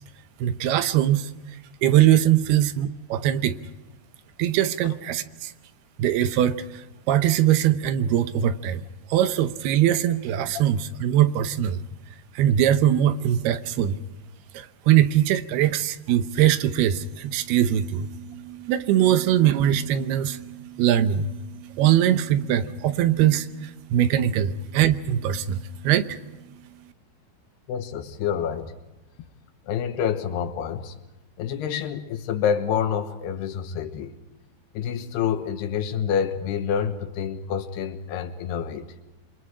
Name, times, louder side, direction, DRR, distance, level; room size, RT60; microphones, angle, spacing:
voice 1, 0.4-1.3 1.8-3.6 4.4-5.5 6.0-8.8 9.1-11.8 12.4-14.0 14.5-26.2, right 11 dB, 80° right, 12 dB, 2.8 m, -22 dB
voice 2, 27.7-28.8 29.7-31.0 31.4-34.1 34.7-38.9, left 8 dB, 80° left, 8 dB, 3.3 m, -27 dB
28.0 x 24.0 x 5.0 m, 1.1 s
omnidirectional pair, 4.6 m